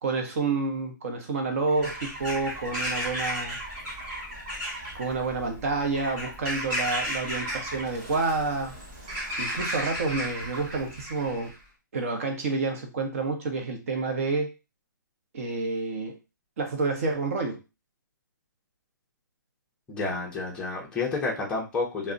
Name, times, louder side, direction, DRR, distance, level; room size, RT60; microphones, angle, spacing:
voice 1, 0.0-3.6 5.0-8.7 9.4-11.5 11.9-14.5 15.3-16.2 16.6-17.6, right 3 dB, 45° right, 4 dB, 0.8 m, -29 dB
Bird vocalization bird call bird song / Crow, 1.7-11.6, equal, 25° right, 1.1 m, -34 dB
voice 2, 19.9-22.1, left 3 dB, 10° left, -3 dB, 0.6 m, -30 dB
2.3 x 2.1 x 3.7 m, 0.28 s
hypercardioid pair, 160°, 11 cm